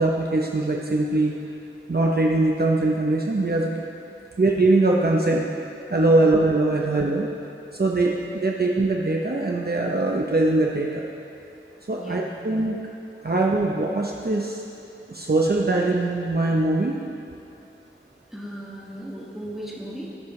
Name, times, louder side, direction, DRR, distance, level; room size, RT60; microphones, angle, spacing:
voice 1, 0.0-1.3 1.9-3.8 4.4-5.5 5.9-7.3 7.7-11.0 11.9-12.8 13.2-14.6 15.1-17.0, right 2 dB, 50° right, -2 dB, 0.9 m, -22 dB
voice 2, 11.9-12.4 13.2-13.3 18.3-20.1, right 1 dB, ahead, -5 dB, 2.1 m, -37 dB
19.5 x 6.7 x 3.3 m, 2.8 s
wide cardioid pair, 45°, 21 cm